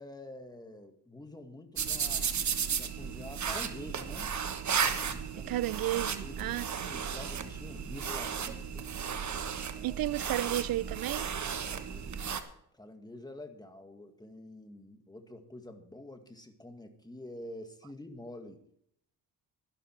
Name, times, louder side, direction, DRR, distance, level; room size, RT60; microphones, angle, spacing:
voice 1, 0.0-2.4 2.8-4.4 5.0-5.6 6.2-9.0 9.7-10.0 11.6-18.6, left 1 dB, 10° left, 1.9 m, -48 dB
sound 1, 1.8-12.4, right 7 dB, 45° right, 1.2 m, -34 dB
voice 2, 5.5-6.9 9.8-11.3, right 14 dB, 60° right, 0.5 m, -33 dB
12.5 x 12.0 x 4.6 m
cardioid pair, 90°, 40 cm